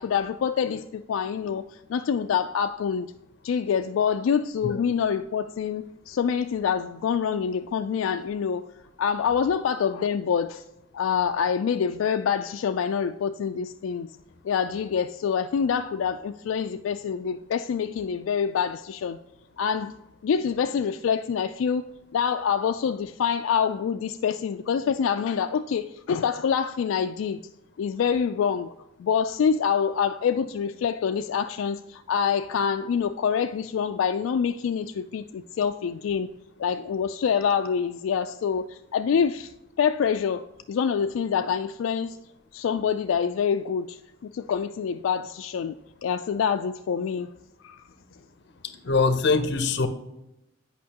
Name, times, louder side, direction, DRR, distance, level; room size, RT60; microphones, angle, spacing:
voice 1, 0.0-3.1 3.4-8.7 9.0-10.6 10.9-14.1 14.4-19.2 19.6-19.9 20.2-27.4 27.8-28.7 29.0-36.3 36.6-39.5 39.8-42.2 42.5-45.7 46.0-47.3 47.6-47.8, left 7 dB, 85° left, 0.3 m, -26 dB
voice 2, 48.8-49.9, left 4 dB, 60° left, 0.7 m, -22 dB
8.5 x 5.5 x 2.9 m
head